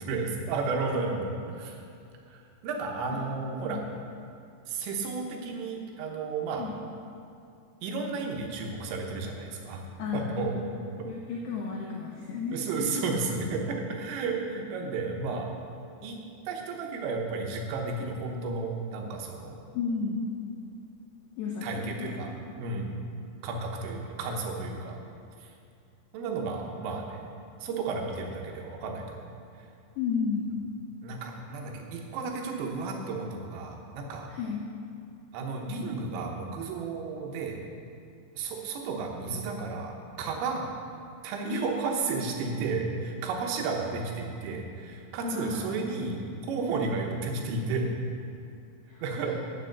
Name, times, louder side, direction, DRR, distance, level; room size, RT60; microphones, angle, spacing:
voice 1, 0.0-1.8 2.3-3.8 4.7-6.6 7.8-9.9 10.1-10.6 12.5-15.5 16.0-16.2 16.5-19.6 21.6-22.9 23.4-25.0 26.1-27.3 27.6-29.3 31.0-34.3 35.3-37.6 38.4-40.7 41.2-46.2 46.5-47.9 49.0-49.3, right 4 dB, 80° right, 1 dB, 3.5 m, -33 dB
voice 2, 10.0-10.7 11.0-13.0 19.7-20.3 21.4-22.2 30.0-30.5 34.3-34.7 41.4-41.8 45.2-45.7 48.9-49.3, left 5 dB, 80° left, -2 dB, 2.4 m, -33 dB
8.9 x 7.8 x 6.6 m, 2.5 s
omnidirectional pair, 6.0 m